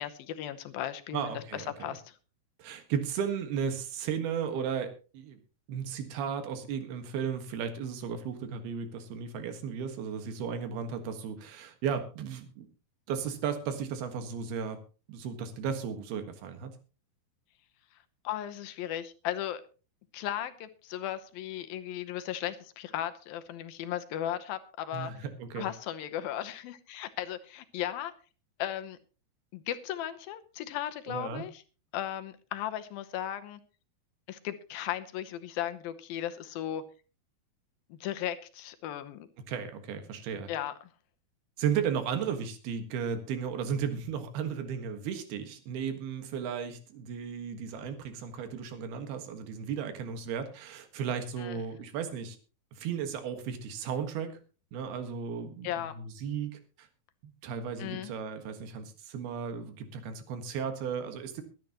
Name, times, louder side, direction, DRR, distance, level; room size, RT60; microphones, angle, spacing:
voice 1, 0.0-2.2 18.2-19.6 20.1-25.1 25.6-28.1 28.6-29.0 29.5-31.6 31.9-33.6 34.3-36.8 37.9-39.3 40.5-40.7 51.4-51.6 55.6-55.9 57.8-58.1, left 11 dB, 75° left, 2.7 m, -36 dB
voice 2, 1.1-1.9 2.6-5.4 5.7-12.7 13.1-14.8 15.1-16.7 24.9-25.7 31.1-31.5 39.5-40.5 41.6-52.4 52.7-54.4 54.7-56.9 57.2-61.4, right 7 dB, 85° right, 3.6 m, -35 dB
22.5 x 10.5 x 3.0 m
omnidirectional pair, 4.3 m